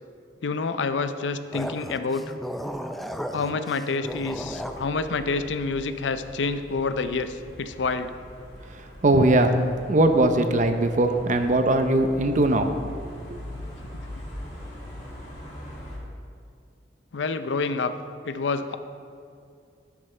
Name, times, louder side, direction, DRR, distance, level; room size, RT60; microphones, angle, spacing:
voice 1, 0.4-2.2 3.3-8.1 13.5-13.6 14.1-14.2 17.1-17.9 18.2-18.8, left 4 dB, 90° left, 10 dB, 0.5 m, -28 dB
sound 1, 1.5-4.9, equal, ahead, 0.3 m, -35 dB
sound 2, 4.1-16.0, equal, 40° left, 2.5 m, -42 dB
voice 2, 8.7-9.6 9.9-12.7 13.0-13.4, right 1 dB, 45° right, 7 dB, 0.7 m, -21 dB
11.0 x 9.9 x 3.3 m, 2.4 s
head